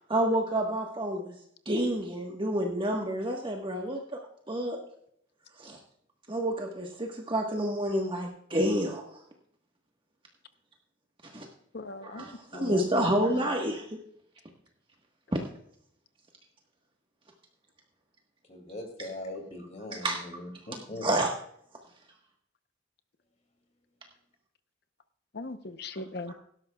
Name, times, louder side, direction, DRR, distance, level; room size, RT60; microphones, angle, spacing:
voice 1, 0.1-1.3 1.6-4.2 4.5-4.8 5.6-5.8 6.3-9.0 11.3-11.5 12.0-14.0 15.3-15.4 19.9-20.2 21.0-21.3, right 1 dB, 25° right, 1 dB, 1.3 m, -29 dB
voice 2, 11.7-13.5 25.3-26.3, left 2 dB, 55° left, 10 dB, 0.8 m, -40 dB
voice 3, 18.5-21.1, left 1 dB, 35° left, 3 dB, 2.5 m, -41 dB
17.0 x 12.5 x 2.3 m, 0.68 s
head